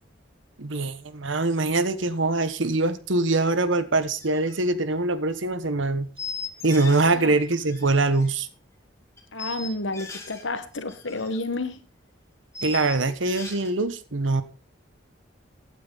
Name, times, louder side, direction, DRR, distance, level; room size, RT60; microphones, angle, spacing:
voice 1, 0.6-6.1 6.6-8.5 12.6-14.4, right 2 dB, 75° right, 1.2 m, -23 dB
sound 1, 4.2-4.6 4.8-5.0 6.2-7.2 7.4-8.3 9.2-10.4 10.7-11.4 11.6-11.7 12.5-13.7, left 4 dB, 15° left, 2.4 m, -38 dB
voice 2, 9.3-11.8, left 2 dB, 75° left, 1.4 m, -30 dB
15.5 x 9.3 x 4.0 m
head